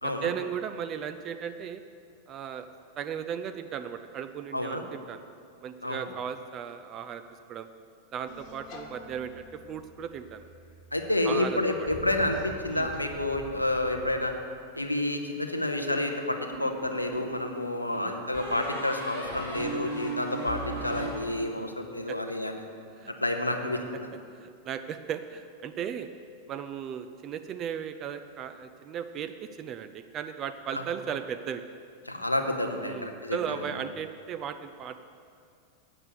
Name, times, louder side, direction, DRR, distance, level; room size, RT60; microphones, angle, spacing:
voice 1, 0.0-1.8 2.3-2.7 3.0-5.2 5.6-7.2 7.5-7.7 8.1-10.4 11.3-11.9 12.7-12.9 17.8-18.2 22.1-22.2 23.0-23.1 24.4-26.1 26.5-31.6 32.8-35.0, right 8 dB, 30° right, 9 dB, 0.4 m, -36 dB
voice 2, 4.5-4.8 5.8-6.0 10.9-14.3 14.7-22.6 23.1-23.8 30.7-30.8 32.1-33.4, left 1 dB, 85° left, 4 dB, 0.8 m, -29 dB
sound 1, 8.3-14.4, left 3 dB, 40° left, 1.2 m, -46 dB
sound 2, 16.5-17.4 18.3-21.8, right 2 dB, 85° right, 2.6 m, -37 dB
8.7 x 6.8 x 6.7 m, 2.3 s
figure-of-eight pair, 90°, 0 cm